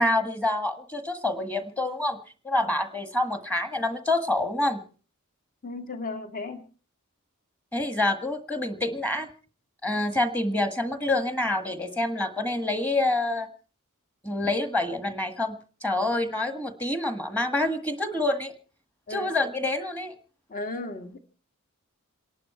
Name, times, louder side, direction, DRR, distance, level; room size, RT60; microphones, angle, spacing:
voice 1, 0.0-2.2 2.4-4.8 7.7-9.3 9.8-13.5 14.2-15.6 15.8-18.5 19.1-20.1, left 2 dB, 5° left, 1.6 m, -27 dB
voice 2, 5.6-6.6 19.1-19.3 20.5-21.2, left 2 dB, 35° left, 1.8 m, -35 dB
28.0 x 11.5 x 4.4 m
head